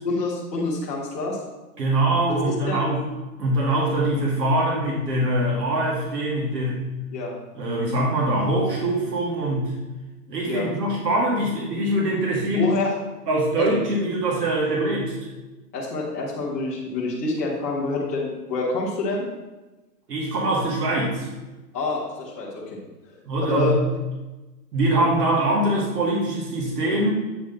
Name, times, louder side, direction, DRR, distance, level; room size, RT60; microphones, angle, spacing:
voice 1, 0.0-1.4 2.7-2.8 7.1-7.3 10.4-10.7 12.6-12.9 13.6-13.7 15.7-19.2 21.7-22.6 23.5-23.7, left 3 dB, 10° left, -8 dB, 0.6 m, -27 dB
voice 2, 1.8-3.0 3.4-6.8 7.5-9.7 10.3-12.9 13.3-15.1 20.1-21.3 23.2-23.8 24.7-27.1, right 1 dB, 75° right, -4 dB, 2.3 m, -23 dB
8.5 x 3.9 x 4.1 m, 1.1 s
hypercardioid pair, 175°, 48 cm